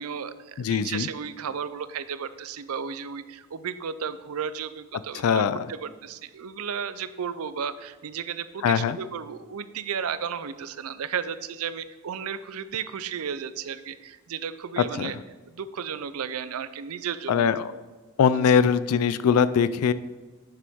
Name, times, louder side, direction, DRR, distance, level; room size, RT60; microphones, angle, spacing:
voice 1, 0.0-5.4 5.7-15.2 15.5-17.5 18.3-18.6, right 7 dB, 80° right, 14 dB, 0.5 m, -34 dB
voice 2, 0.6-1.1 5.1-5.7 8.6-9.0 14.8-15.1 17.3-17.7 18.2-19.9, left 7 dB, 85° left, 15 dB, 0.3 m, -22 dB
9.2 x 6.8 x 3.6 m, 1.3 s
head